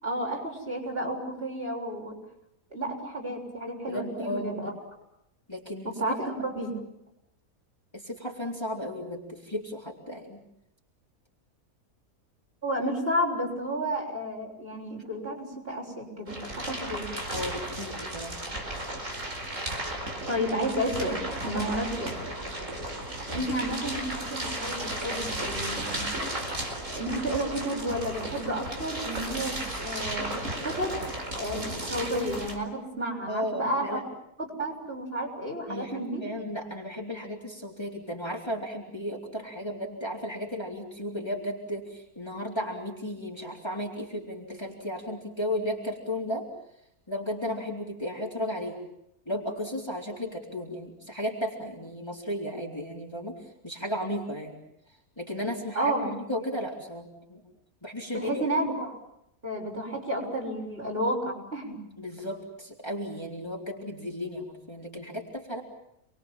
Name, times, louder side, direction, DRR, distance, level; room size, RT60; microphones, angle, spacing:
voice 1, 0.0-2.2 2.7-4.7 6.0-6.8 12.6-17.1 20.3-22.7 23.3-26.1 26.9-31.0 31.3-34.0 34.4-36.2 55.8-56.1 58.1-59.0 59.4-61.8, right 1 dB, 40° right, -1 dB, 7.2 m, -31 dB
voice 2, 3.9-4.5 5.5-5.9 7.9-10.4 17.3-18.4 21.9-22.0 23.3-23.5 33.3-34.0 35.7-46.5 47.1-48.8 49.3-53.3 53.6-54.6 55.2-57.4 57.8-58.4 62.0-65.6, equal, 15° left, -1 dB, 4.1 m, -34 dB
sound 1, 16.3-32.6, right 1 dB, 55° right, 5.1 m, -34 dB
29.5 x 22.5 x 7.5 m, 0.77 s
omnidirectional pair, 1.6 m